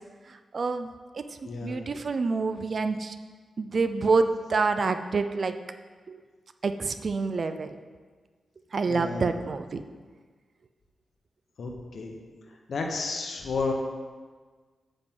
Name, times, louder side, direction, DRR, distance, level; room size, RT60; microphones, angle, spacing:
voice 1, 0.5-0.9 1.1-1.2 1.6-3.1 3.6-5.5 6.1-6.2 6.6-7.8 8.7-9.8, right 4 dB, 50° right, 9 dB, 0.5 m, -27 dB
voice 2, 1.4-1.8 8.9-9.3 11.6-12.1 12.7-13.7, left 4 dB, 65° left, 1 dB, 1.1 m, -32 dB
8.9 x 7.7 x 3.8 m, 1.5 s
wide cardioid pair, 100°, 0 cm